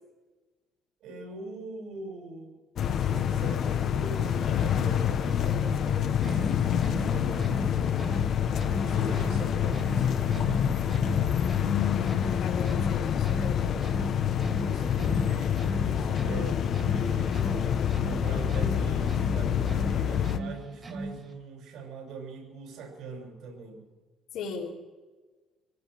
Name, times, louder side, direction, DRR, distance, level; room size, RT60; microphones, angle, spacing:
voice 1, 1.0-2.5 2.9-8.4 8.8-11.3 14.6-17.5 18.0-23.8, right 3 dB, 75° right, 2 dB, 6.7 m, -42 dB
sound 1, 2.8-20.4, left 8 dB, 50° left, 1.0 m, -27 dB
sound 2, 6.1-21.4, right 2 dB, 30° right, 2.4 m, -39 dB
voice 2, 11.9-13.8 24.3-24.8, left 5 dB, 75° left, -5 dB, 3.5 m, -39 dB
25.0 x 16.5 x 6.2 m, 1.3 s
cardioid pair, 140°, 0 cm